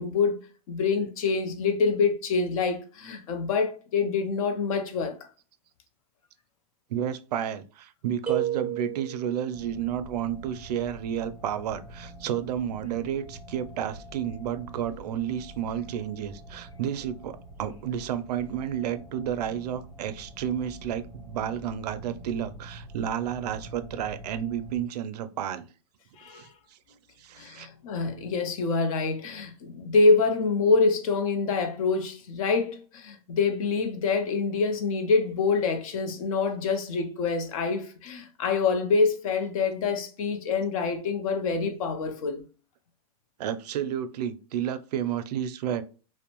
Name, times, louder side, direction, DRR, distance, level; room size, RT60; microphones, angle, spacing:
voice 1, 0.0-5.2 26.2-26.5 27.4-42.4, left 4 dB, 60° left, 0.6 m, -26 dB
voice 2, 6.9-25.7 26.3-26.5 27.2-27.7 43.4-45.8, right 9 dB, 85° right, 0.4 m, -31 dB
sound 1, 8.3-9.4, right 12 dB, 5° right, 0.5 m, -30 dB
sound 2, 9.5-24.8, right 1 dB, 25° left, 1.1 m, -46 dB
2.6 x 2.1 x 2.8 m
supercardioid pair, 150°, 20 cm